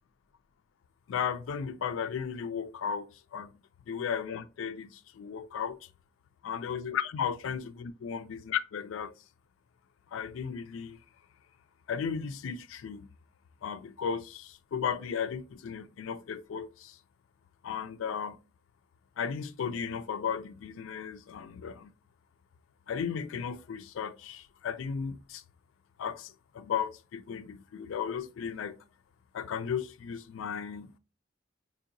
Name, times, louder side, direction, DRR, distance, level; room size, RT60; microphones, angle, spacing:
voice 1, 1.1-3.5 3.9-4.9 5.2-5.8 6.4-8.2 8.7-9.1 10.1-11.0 11.9-13.1 13.6-16.9 17.6-18.4 19.2-21.9 22.9-25.4 26.0-28.8 29.3-31.0, left 7 dB, 80° left, 0.3 m, -35 dB
4.4 x 2.7 x 2.6 m
head